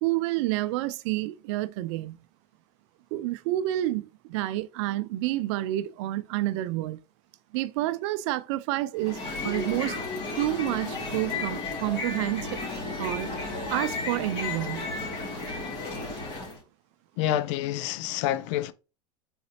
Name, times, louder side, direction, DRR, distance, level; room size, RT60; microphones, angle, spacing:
voice 1, 0.0-2.2 3.1-7.0 7.5-10.0 10.4-12.6 13.0-13.3 13.7-14.9, right 16 dB, 60° right, 0.4 m, -29 dB
sound 1, 9.0-16.6, left 3 dB, 40° left, 2.3 m, -33 dB
voice 2, 17.2-18.7, left 12 dB, 65° left, 0.4 m, -28 dB
4.1 x 3.9 x 2.8 m
supercardioid pair, 120°, 16 cm